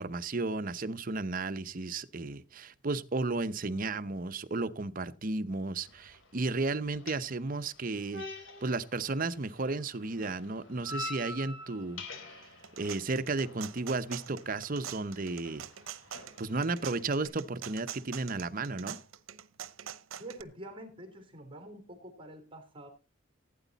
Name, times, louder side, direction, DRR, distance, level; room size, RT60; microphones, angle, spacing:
voice 1, 0.0-8.2 8.6-12.0 12.3-12.5 12.8-15.7 16.4-19.0, right 3 dB, 45° right, 11 dB, 0.7 m, -33 dB
sound 1, 5.8-17.3, left 3 dB, 65° left, 3.7 m, -47 dB
sound 2, 12.4-20.4, right 9 dB, 85° right, 0.8 m, -44 dB
voice 2, 20.2-22.9, right 1 dB, 25° right, 7 dB, 3.2 m, -46 dB
16.0 x 9.1 x 4.0 m, 0.31 s
head